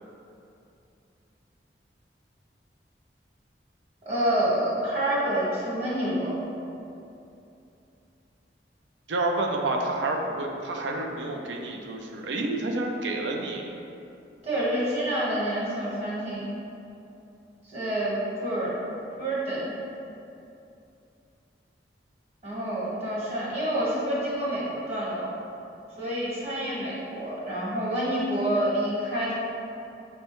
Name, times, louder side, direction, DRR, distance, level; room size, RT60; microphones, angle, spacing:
voice 1, 4.0-6.3 14.4-16.4 17.6-18.7 19.2-19.7 22.4-25.3 26.0-29.3, right 1 dB, 35° right, -8 dB, 1.1 m, -28 dB
voice 2, 9.1-13.7, right 2 dB, 85° right, 1 dB, 0.5 m, -29 dB
6.2 x 2.2 x 2.9 m, 2.7 s
head